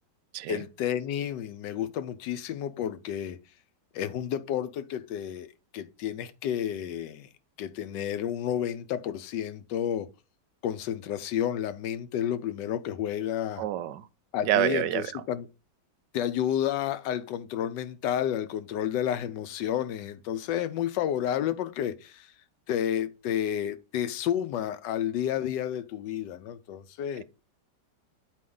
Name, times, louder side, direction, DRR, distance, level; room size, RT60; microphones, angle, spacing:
voice 1, 0.5-3.4 3.9-7.3 7.6-10.1 10.6-13.6 14.3-15.5 16.1-22.3 22.7-27.2, left 10 dB, 85° left, 1.3 m, -31 dB
voice 2, 13.6-14.1 14.4-15.2, right 13 dB, 80° right, 1.2 m, -27 dB
8.6 x 4.6 x 3.7 m
omnidirectional pair, 1.9 m